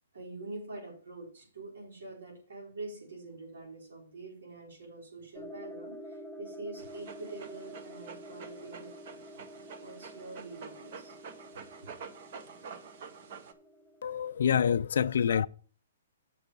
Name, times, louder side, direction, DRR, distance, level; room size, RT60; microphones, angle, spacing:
voice 1, 0.1-9.2 9.8-11.2 11.8-11.9, right 2 dB, 90° right, 4.6 m, -45 dB
sound 1, 5.3-14.9, equal, ahead, 0.4 m, -49 dB
Dog, 6.8-13.5, right 6 dB, 40° right, 0.8 m, -48 dB
voice 2, 14.0-15.5, left 8 dB, 60° left, 0.3 m, -26 dB
7.5 x 6.2 x 5.4 m
hypercardioid pair, 175°, 0 cm